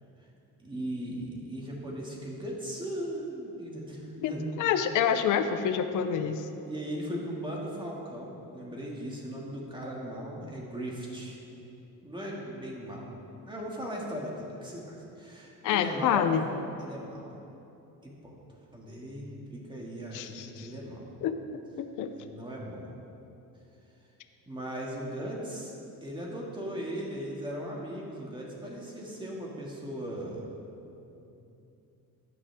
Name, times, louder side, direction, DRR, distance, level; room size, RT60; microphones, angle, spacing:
voice 1, 0.6-4.5 6.6-11.4 12.0-13.1 13.5-16.3 16.8-17.3 18.0-18.4 18.7-21.1 22.2-22.9 24.4-25.7 26.0-30.4 31.2-31.3, equal, 15° right, -3 dB, 2.3 m, -38 dB
voice 2, 4.2-6.5 15.6-16.4 20.1-20.7 21.2-21.4 21.8-22.1, left 8 dB, 60° left, 8 dB, 0.7 m, -27 dB
14.5 x 10.5 x 3.7 m, 2.8 s
cardioid pair, 130°, 35 cm